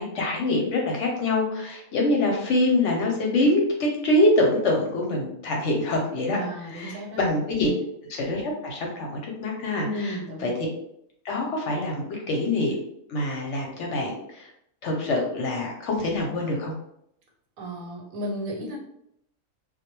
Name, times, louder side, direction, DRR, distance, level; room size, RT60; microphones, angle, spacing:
voice 1, 0.0-6.4 6.7-7.7 8.2-10.1 10.4-10.7 11.2-12.8 13.1-14.5 14.8-16.7, left 1 dB, 65° left, 0 dB, 0.8 m, -25 dB
voice 2, 6.3-7.2 7.6-7.7 9.8-10.6 17.6-18.8, equal, 85° right, 0 dB, 1.1 m, -33 dB
2.2 x 2.1 x 2.9 m, 0.73 s
omnidirectional pair, 1.5 m